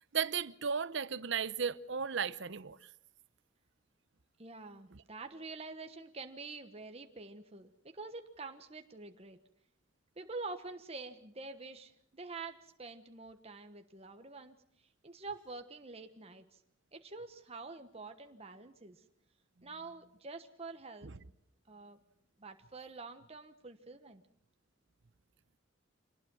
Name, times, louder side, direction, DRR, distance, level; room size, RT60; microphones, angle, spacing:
voice 1, 0.1-2.9 4.9-5.0 21.0-21.2, right 6 dB, 65° right, 0.8 m, -35 dB
voice 2, 4.4-9.4 10.2-14.6 15.0-16.6 16.9-19.0 19.6-21.1 21.7-22.0 22.4-24.2, right 3 dB, 30° right, 1.2 m, -47 dB
26.0 x 19.5 x 6.3 m
head